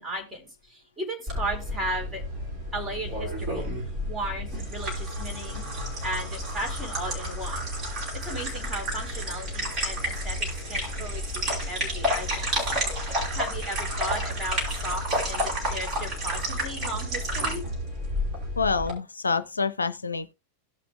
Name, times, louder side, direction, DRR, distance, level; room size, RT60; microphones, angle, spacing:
voice 1, 0.0-2.2 2.7-3.7 4.1-5.6 6.0-12.7 13.3-17.6, right 1 dB, 15° right, 4.1 m, -36 dB
sound 1, 1.3-18.9, equal, 30° right, 5.5 m, -30 dB
voice 2, 18.6-20.3, left 4 dB, 75° left, 0.5 m, -27 dB
17.0 x 6.0 x 2.4 m
figure-of-eight pair, 90°, 0 cm